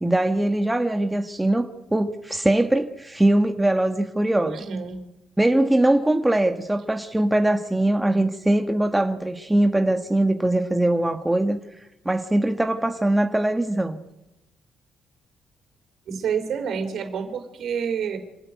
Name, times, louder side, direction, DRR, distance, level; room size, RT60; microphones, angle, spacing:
voice 1, 0.0-4.6 5.4-11.6 12.0-14.0, right 1 dB, 10° right, 5 dB, 1.6 m, -21 dB
voice 2, 4.4-5.0 16.1-18.2, right 7 dB, 70° right, 5 dB, 4.1 m, -28 dB
26.5 x 13.5 x 9.5 m, 0.94 s
cardioid pair, 90°, 0 cm